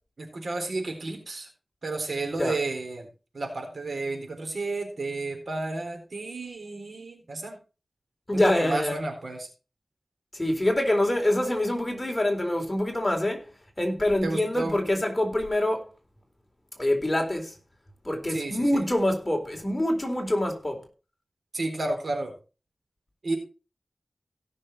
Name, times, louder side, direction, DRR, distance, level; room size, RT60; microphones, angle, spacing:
voice 1, 0.2-1.5 1.8-3.1 3.3-7.6 8.3-9.5 14.2-14.8 18.3-18.9 21.5-22.3 23.2-23.4, right 2 dB, 80° right, 3.9 m, -32 dB
voice 2, 8.3-9.0 10.3-13.5 13.8-15.9 16.8-17.6 18.0-20.8, left 1 dB, 25° left, 3.9 m, -25 dB
17.0 x 6.5 x 4.4 m
wide cardioid pair, 60°, 0 cm